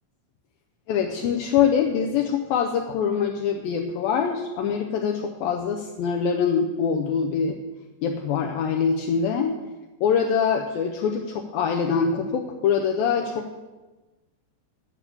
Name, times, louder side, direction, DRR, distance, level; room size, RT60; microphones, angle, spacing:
voice 1, 0.9-7.6 8.0-9.5 10.0-13.6, left 7 dB, 80° left, 2 dB, 2.1 m, -24 dB
10.5 x 8.3 x 7.1 m, 1.2 s
omnidirectional pair, 4.9 m